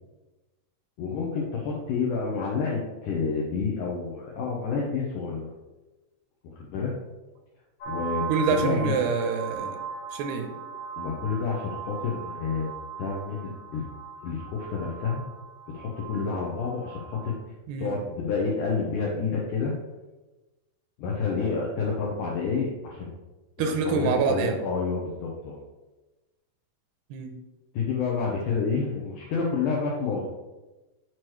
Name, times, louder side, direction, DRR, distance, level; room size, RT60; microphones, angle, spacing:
voice 1, 1.0-5.5 6.6-6.9 7.9-9.0 11.0-12.7 13.0-13.8 14.2-15.2 15.7-17.3 17.8-19.7 21.0-23.1 23.6-25.6 27.7-30.3, left 5 dB, 85° left, -2 dB, 1.8 m, -29 dB
sound 1, 7.8-17.3, right 6 dB, 55° left, 2.4 m, -38 dB
voice 2, 8.3-9.8 10.1-10.5 17.7-17.9 23.6-24.6 27.1-27.3, right 5 dB, 85° right, 5 dB, 2.6 m, -26 dB
7.7 x 4.6 x 3.1 m, 1.1 s
omnidirectional pair, 4.6 m